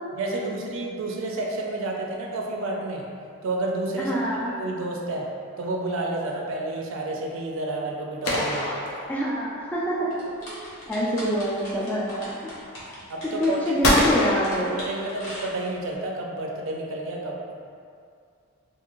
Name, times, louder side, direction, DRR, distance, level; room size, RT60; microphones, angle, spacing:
voice 1, 0.1-3.0 3.4-4.1 4.4-5.3 5.6-8.7 13.1-13.6 14.7-17.5, right 2 dB, 65° right, 0 dB, 0.4 m, -30 dB
voice 2, 4.0-4.6 9.1-12.4 13.4-14.8, equal, 5° left, -6 dB, 0.3 m, -26 dB
sound 1, 8.2-9.7 13.8-15.4, left 1 dB, 85° left, 0.5 m, -25 dB
sound 2, 10.1-15.9, equal, 60° left, 0.9 m, -41 dB
2.5 x 2.4 x 2.9 m, 2.3 s
head